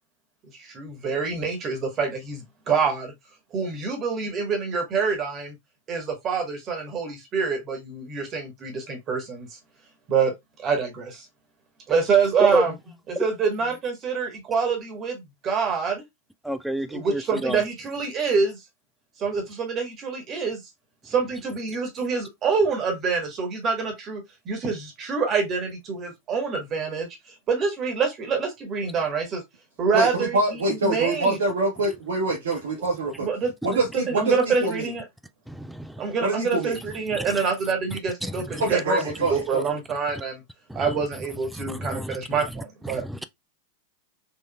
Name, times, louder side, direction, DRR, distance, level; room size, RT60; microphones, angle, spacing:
voice 1, 0.6-3.1 3.5-5.6 5.9-9.5 10.1-10.3 10.6-11.2 11.9-12.7 13.1-16.0 16.9-18.6 19.2-20.6 21.0-27.1 27.5-29.4 29.8-31.4 33.2-35.0 36.0-40.4 40.7-43.0, right 5 dB, 30° right, 1.1 m, -26 dB
voice 2, 16.4-17.6 35.5-36.0 37.1-37.3 38.2-38.6 40.7-40.8 41.6-42.2 42.9-43.2, right 1 dB, ahead, 0.3 m, -29 dB
voice 3, 29.9-33.3 33.6-34.9 36.2-36.8 38.6-39.6, right 2 dB, 65° right, 0.9 m, -25 dB
3.8 x 3.0 x 2.2 m
figure-of-eight pair, 90°, 0 cm